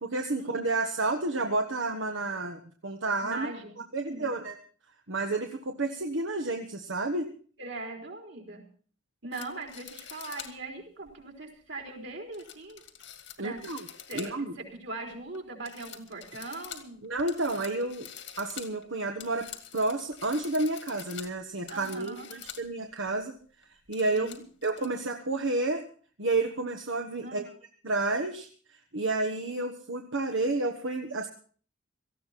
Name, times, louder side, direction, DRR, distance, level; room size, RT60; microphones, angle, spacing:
voice 1, 0.0-3.5 3.9-4.6 5.1-7.3 13.4-13.9 14.1-14.5 17.0-18.1 18.4-19.5 19.7-23.3 23.9-24.3 24.6-25.8 26.2-27.4 27.8-28.5 28.9-31.3, right 2 dB, 85° right, 3 dB, 1.4 m, -30 dB
voice 2, 3.2-4.4 7.6-8.7 9.2-12.8 13.4-13.6 14.1-17.0 17.5-17.6 21.7-22.3 24.2-24.4 27.2-27.5, right 2 dB, 65° right, 1 dB, 4.1 m, -41 dB
sound 1, 9.3-10.6 11.1-11.2 12.3-14.6 14.9-15.4 15.6-22.7 23.1-23.2 23.6-24.9, left 10 dB, 75° left, 2.1 m, -46 dB
18.0 x 15.0 x 4.2 m, 0.44 s
head